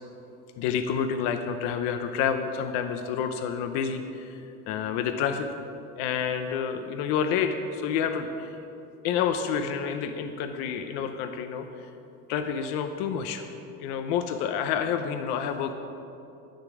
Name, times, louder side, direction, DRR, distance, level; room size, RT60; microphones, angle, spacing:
voice 1, 0.6-4.4 4.7-5.5 6.0-8.6 9.0-11.9 12.3-13.4 13.8-15.7, left 7 dB, 85° left, 7 dB, 0.8 m, -29 dB
11.0 x 10.5 x 4.9 m, 2.7 s
cardioid pair, 160°, 32 cm